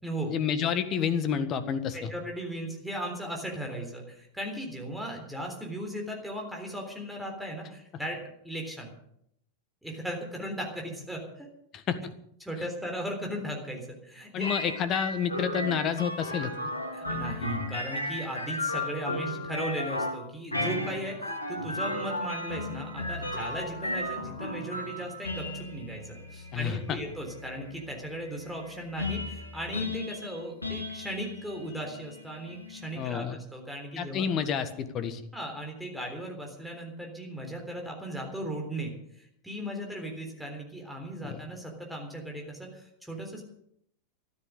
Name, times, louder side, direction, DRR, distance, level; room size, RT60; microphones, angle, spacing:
voice 1, 0.3-2.1 11.7-12.0 12.6-12.7 14.3-16.5 26.5-27.0 33.0-33.4 34.0-35.2 41.2-41.4, left 7 dB, 30° left, 11 dB, 1.6 m, -29 dB
voice 2, 1.9-8.2 8.4-8.9 9.8-11.5 12.4-14.5 17.0-33.2 33.5-34.2 35.3-43.4, right 1 dB, 5° right, 0 dB, 3.6 m, -37 dB
sound 1, 14.4-33.1, left 1 dB, 80° left, 2.6 m, -35 dB
14.5 x 12.5 x 6.6 m, 0.71 s
figure-of-eight pair, 90°, 0 cm